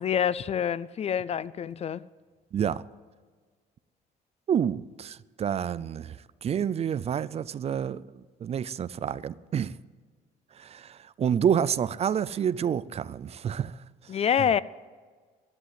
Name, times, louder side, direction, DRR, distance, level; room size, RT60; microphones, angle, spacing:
voice 1, 0.0-2.0 14.1-14.6, left 8 dB, 40° left, 0.4 m, -26 dB
voice 2, 2.5-2.8 4.5-8.0 8.4-9.7 10.6-13.8 14.4-14.5, right 8 dB, 40° right, 0.4 m, -28 dB
15.5 x 11.0 x 8.3 m
cardioid pair, 110°, 17 cm